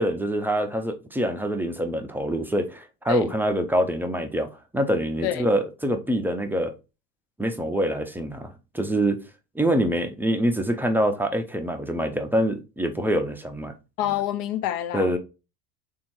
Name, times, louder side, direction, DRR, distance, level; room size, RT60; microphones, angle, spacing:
voice 1, 0.0-6.7 7.4-9.2 9.6-13.7 14.9-15.2, right 1 dB, 5° right, 0.4 m, -25 dB
voice 2, 14.0-15.1, left 12 dB, 70° left, 0.6 m, -27 dB
3.5 x 2.7 x 4.4 m
hypercardioid pair, 75°, 50 cm